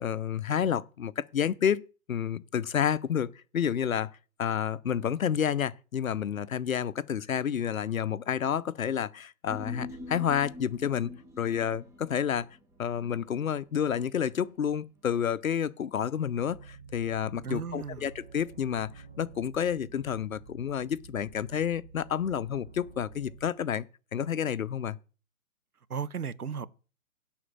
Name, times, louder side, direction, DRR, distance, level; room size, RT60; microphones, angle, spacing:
voice 1, 0.0-4.1 4.4-11.1 11.4-12.5 12.8-18.9 19.2-23.9 24.1-25.0, left 8 dB, 65° left, 0.7 m, -30 dB
Human voice, 9.5-14.1 14.4-14.5, left 2 dB, 5° right, 1.5 m, -44 dB
sound 1, 16.4-23.5, right 5 dB, 35° right, 1.7 m, -50 dB
voice 2, 17.4-18.1 25.9-26.7, right 7 dB, 80° right, 0.9 m, -35 dB
11.0 x 4.4 x 7.5 m
figure-of-eight pair, 130°, 44 cm